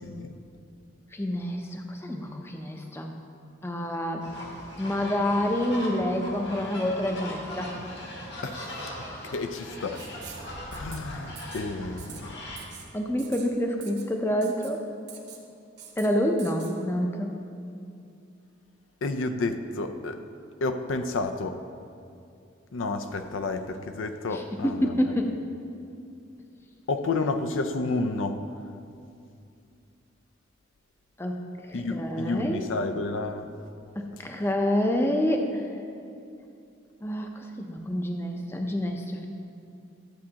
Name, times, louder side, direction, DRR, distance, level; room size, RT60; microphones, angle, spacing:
voice 1, 1.1-3.1 3.6-4.3 4.8-7.8 9.0-9.2 12.9-14.8 16.0-17.3 24.3-25.4 31.2-32.7 33.9-35.7 37.0-39.3, equal, 10° left, 3 dB, 0.5 m, -28 dB
sound 1, 4.2-12.6, left 1 dB, 65° left, 1.5 m, -39 dB
voice 2, 9.3-10.0 10.7-12.3 19.0-20.2 20.6-21.6 22.7-25.1 26.9-28.4 31.7-33.5, left 3 dB, 85° left, 8 dB, 0.5 m, -30 dB
Writing, 9.9-10.5 10.7-11.0 11.3-11.6 12.0-12.2 12.6-12.9 13.2-13.5 13.8-14.1 14.4-14.7 15.1-15.4 15.8-16.1 16.4-16.7, right 8 dB, 60° right, 1.0 m, -44 dB
12.0 x 7.4 x 2.8 m, 2.5 s
head